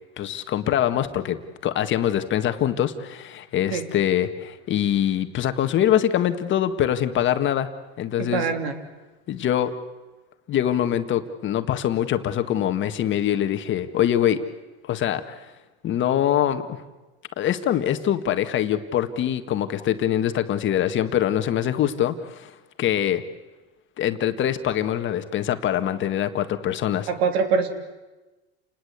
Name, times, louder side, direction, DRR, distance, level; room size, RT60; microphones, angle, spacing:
voice 1, 0.2-7.7 8.0-8.5 9.3-9.7 10.5-14.4 14.9-15.4 15.8-16.8 17.4-22.5 22.8-23.2 24.0-27.1, left 10 dB, 35° left, 8 dB, 1.7 m, -24 dB
voice 2, 8.2-8.7 27.1-27.7, right 5 dB, 75° right, 7 dB, 3.5 m, -23 dB
29.5 x 20.0 x 8.2 m, 1.2 s
supercardioid pair, 115°, 32 cm